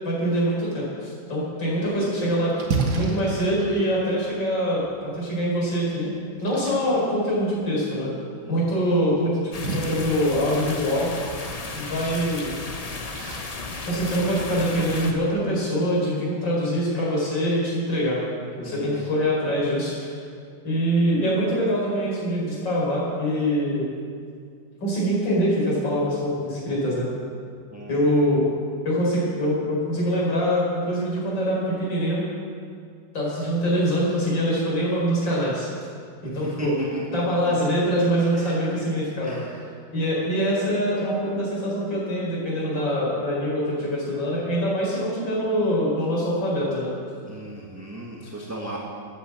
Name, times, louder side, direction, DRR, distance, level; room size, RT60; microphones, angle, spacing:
voice 1, 0.0-2.5 2.9-6.1 6.4-8.1 8.5-11.1 11.7-12.5 13.8-18.2 18.6-20.1 20.6-23.9 24.8-27.1 27.9-28.5 28.8-32.2 33.1-35.7 36.2-36.8 37.1-39.4 39.9-46.9, equal, 70° left, -5 dB, 5.2 m, -24 dB
Splash splatter, 1.6-14.6, right 4 dB, 60° right, 1.9 m, -35 dB
voice 2, 8.4-9.0 11.6-11.9 18.6-19.1 27.7-28.0 36.2-37.2 37.4-37.5 38.3-38.6 39.2-39.6 47.3-48.8, right 1 dB, 10° right, -3 dB, 1.2 m, -36 dB
sound 1, 9.5-15.1, left 3 dB, 45° left, 0.5 m, -34 dB
13.0 x 9.1 x 7.7 m, 2.2 s
omnidirectional pair, 2.1 m